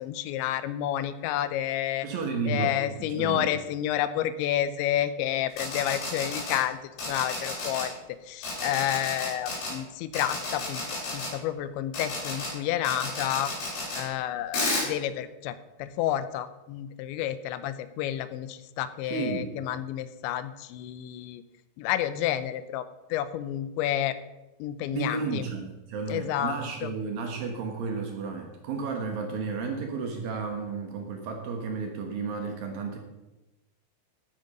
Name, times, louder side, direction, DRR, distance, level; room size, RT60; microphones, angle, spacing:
voice 1, 0.0-2.1 2.5-6.8 7.1-7.9 8.3-10.8 11.1-13.5 13.9-21.4 21.8-22.9 23.1-24.2 24.6-25.4 26.1-26.9, left 12 dB, 85° left, 13 dB, 2.9 m, -30 dB
voice 2, 2.0-3.5 19.0-19.5 24.9-33.0, right 5 dB, 65° right, 3 dB, 2.5 m, -32 dB
sound 1, 5.5-6.6 7.0-7.8 8.4-9.7 10.1-11.3 11.9-12.5 12.8-14.0 14.5-14.9, left 2 dB, 65° left, 6.6 m, -32 dB
12.5 x 9.3 x 5.3 m, 1.0 s
omnidirectional pair, 5.3 m